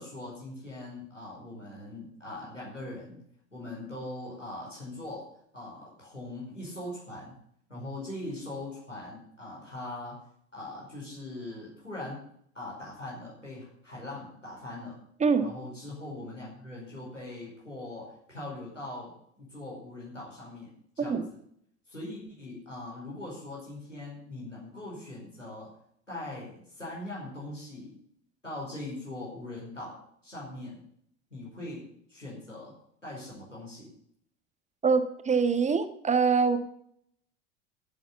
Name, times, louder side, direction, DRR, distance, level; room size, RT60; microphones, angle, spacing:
voice 1, 0.0-3.2 3.5-5.3 5.5-7.4 7.7-10.2 10.5-12.2 12.5-15.0 15.4-21.4 21.9-25.7 26.1-27.9 28.4-30.0 30.2-30.8 31.3-32.7 33.0-33.9, left 2 dB, 90° left, -5 dB, 5.3 m, -41 dB
voice 2, 34.8-36.6, right 5 dB, 20° right, 10 dB, 1.5 m, -24 dB
12.0 x 8.0 x 7.2 m, 0.68 s
figure-of-eight pair, 75°, 36 cm